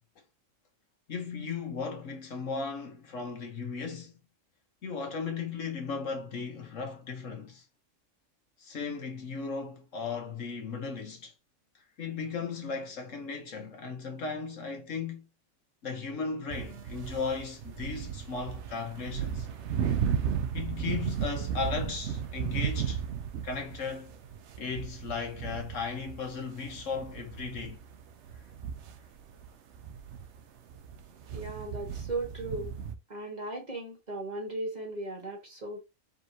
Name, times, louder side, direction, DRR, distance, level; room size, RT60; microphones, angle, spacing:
voice 1, 1.1-4.1 4.8-7.6 8.6-11.3 12.0-15.3 15.8-19.5 20.5-23.0 23.4-24.2 24.6-27.8, left 5 dB, 65° left, 1.4 m, -36 dB
sound 1, 16.5-32.9, right 8 dB, 65° right, 0.9 m, -35 dB
voice 2, 31.3-32.8 33.1-35.8, right 2 dB, 35° right, 1.6 m, -37 dB
4.8 x 3.7 x 2.8 m
omnidirectional pair, 1.4 m